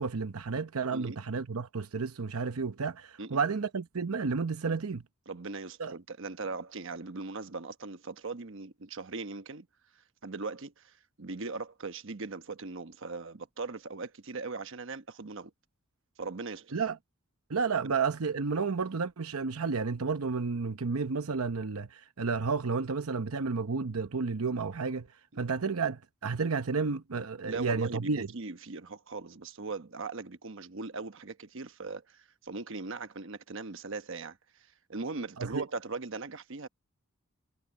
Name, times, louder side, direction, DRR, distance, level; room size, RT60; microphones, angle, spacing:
voice 1, 0.0-5.0 5.8-5.9 16.7-17.0 17.5-25.1 25.4-28.3 35.4-35.6, right 4 dB, 85° right, 0.8 m, -31 dB
voice 2, 5.3-9.7 10.2-15.5 16.2-16.7 17.8-17.9 25.3-25.4 27.5-34.4 34.9-36.7, right 3 dB, 60° right, 1.1 m, -39 dB
head